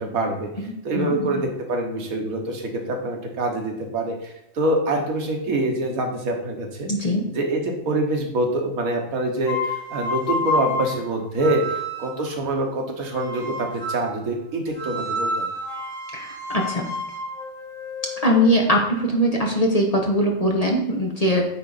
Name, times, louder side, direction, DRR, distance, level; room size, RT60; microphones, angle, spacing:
voice 1, 0.0-0.5 0.8-6.9 7.3-15.5, right 2 dB, 85° right, 2 dB, 1.6 m, -25 dB
voice 2, 0.7-1.4 6.9-7.3 16.1-16.9 18.2-21.5, equal, 35° left, 1 dB, 0.7 m, -21 dB
sound 1, 9.4-12.3 13.1-14.2 14.8-18.8, left 1 dB, 70° left, 1.9 m, -29 dB
8.7 x 3.6 x 4.0 m, 0.84 s
omnidirectional pair, 1.4 m